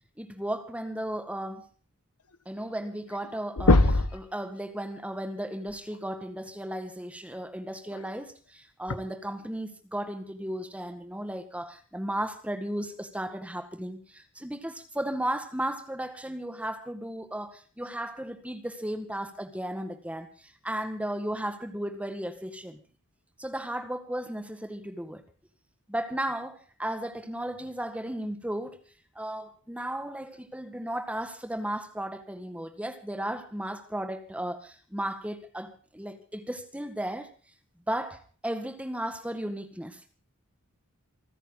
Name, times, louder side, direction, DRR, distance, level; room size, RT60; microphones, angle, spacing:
voice 1, 0.2-1.7 2.5-22.8 23.4-25.2 25.9-28.8 29.2-37.3 37.9-40.0, right 1 dB, 5° right, 1.8 m, -35 dB
sound 1, 2.7-2.8 3.0-3.3 3.6-4.2 5.9-6.0 7.9-8.0 8.9-9.0, left 2 dB, 90° left, 1.2 m, -21 dB
28.0 x 10.0 x 4.0 m
head